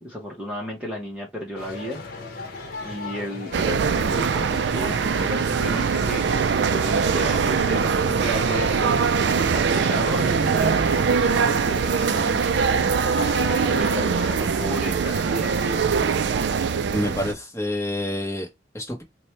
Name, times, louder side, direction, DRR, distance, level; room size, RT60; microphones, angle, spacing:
voice 1, 0.0-2.0 2.8-9.0 9.5-15.8, equal, 5° right, 0.8 m, -34 dB
sound 1, 1.6-16.2, left 2 dB, 50° left, 0.9 m, -37 dB
sound 2, 3.5-17.3, right 5 dB, 60° right, 0.3 m, -22 dB
voice 2, 16.9-18.5 18.7-19.0, left 1 dB, 15° left, 1.0 m, -27 dB
4.3 x 2.2 x 3.2 m
head